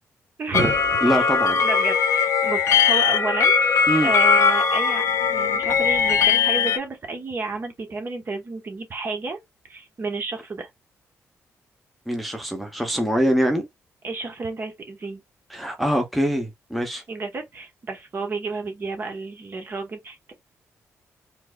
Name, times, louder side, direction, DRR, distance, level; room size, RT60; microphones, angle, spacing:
voice 1, 0.4-0.8 1.1-1.3 1.6-3.5 4.0-9.4 9.7-10.7 14.0-15.2 17.1-20.3, right 3 dB, 40° right, 1.1 m, -31 dB
sound 1, 0.5-6.8, left 6 dB, 70° left, 0.8 m, -20 dB
voice 2, 1.0-1.6 3.9-4.1 12.1-13.7 15.5-17.0, equal, ahead, 0.8 m, -23 dB
4.5 x 2.1 x 2.3 m
cardioid pair, 95°, 5 cm